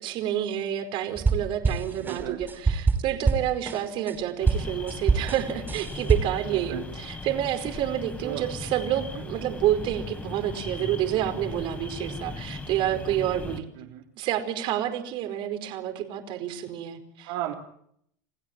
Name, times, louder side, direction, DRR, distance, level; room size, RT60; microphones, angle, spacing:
voice 1, 0.0-13.7 14.2-17.3, right 11 dB, 55° right, 8 dB, 4.7 m, -29 dB
sound 1, 1.2-4.2 4.5-6.5, right 4 dB, 20° right, 4.9 m, -25 dB
voice 2, 2.0-2.4 6.4-6.9 8.2-8.5 8.9-9.3 13.8-14.1 17.2-17.5, right 13 dB, 75° right, 0 dB, 3.5 m, -35 dB
sound 2, 4.4-13.6, left 3 dB, 15° left, 5.0 m, -38 dB
29.5 x 16.0 x 9.2 m, 0.70 s
hypercardioid pair, 95°, 10 cm